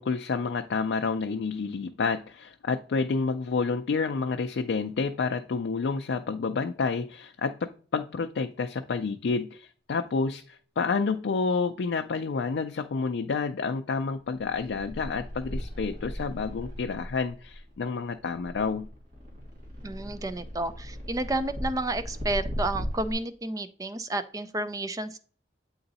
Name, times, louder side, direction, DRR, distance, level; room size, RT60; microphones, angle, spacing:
voice 1, 0.0-18.9, left 4 dB, 75° left, 0.4 m, -29 dB
sound 1, 14.2-23.1, equal, 45° right, 1.8 m, -38 dB
voice 2, 19.8-25.2, right 2 dB, 20° right, 0.4 m, -31 dB
7.8 x 3.9 x 4.0 m
head